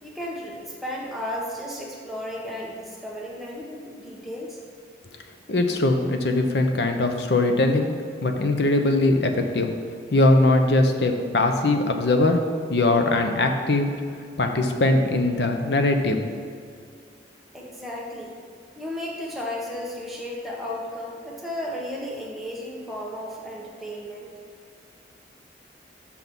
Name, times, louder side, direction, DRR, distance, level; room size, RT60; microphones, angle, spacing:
voice 1, 0.0-4.6 17.5-18.4 18.7-24.3, left 1 dB, ahead, -4 dB, 1.1 m, -34 dB
voice 2, 5.5-7.9 8.2-9.7 10.1-12.4 12.7-13.9 14.4-16.2, left 2 dB, 65° left, 5 dB, 0.7 m, -21 dB
6.1 x 5.9 x 5.3 m, 2.2 s
head